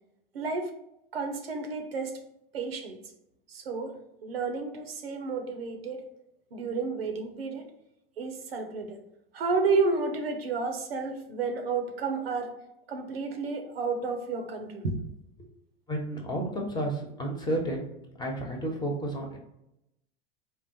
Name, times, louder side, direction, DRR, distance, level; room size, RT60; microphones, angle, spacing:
voice 1, 0.3-0.7 1.1-2.2 2.5-3.0 3.5-6.0 6.5-7.7 8.2-9.0 9.3-12.5 12.9-15.0, right 4 dB, 85° right, 5 dB, 0.7 m, -31 dB
voice 2, 15.9-17.9 18.2-19.4, right 1 dB, 15° left, 0 dB, 1.0 m, -31 dB
3.7 x 2.5 x 2.9 m, 0.83 s
hypercardioid pair, 95°, 29 cm